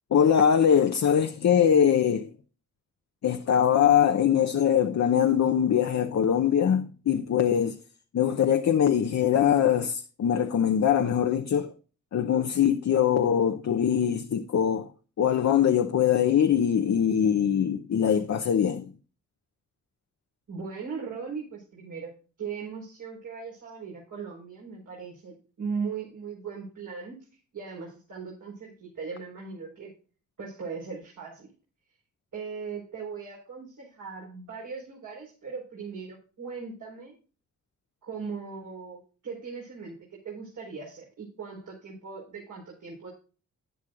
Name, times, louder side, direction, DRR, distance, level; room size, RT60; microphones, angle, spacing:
voice 1, 0.1-2.3 3.2-7.7 8.1-11.7 12.1-14.8 15.2-18.9, left 8 dB, 55° left, 0.8 m, -22 dB
voice 2, 20.5-22.1 22.4-27.2 27.5-29.9 30.4-31.5 32.3-37.1 38.0-43.1, right 5 dB, 65° right, 4.8 m, -38 dB
12.0 x 9.5 x 2.5 m
supercardioid pair, 50°, 33 cm